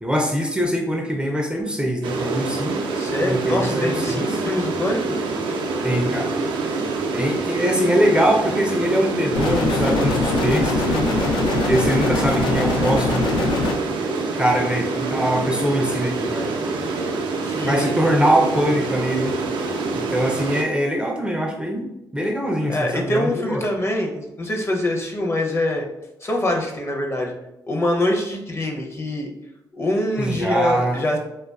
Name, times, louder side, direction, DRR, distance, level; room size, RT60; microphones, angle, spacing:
voice 1, 0.0-2.8 3.2-4.4 5.8-6.3 7.1-11.0 11.5-13.4 14.4-16.5 17.6-19.4 20.0-21.9 22.1-23.6 30.2-31.0, equal, 10° right, 0 dB, 0.4 m, -22 dB
sound 1, 2.0-20.6, right 3 dB, 80° right, 0.3 m, -26 dB
voice 2, 2.9-5.2 17.4-18.1 22.7-25.8 26.2-27.3 27.7-29.3 29.7-31.2, left 1 dB, 35° left, 1 dB, 0.6 m, -24 dB
sound 2, 9.3-13.7, left 3 dB, 80° left, 0.4 m, -22 dB
2.4 x 2.2 x 2.3 m, 0.91 s
cardioid pair, 65°, 8 cm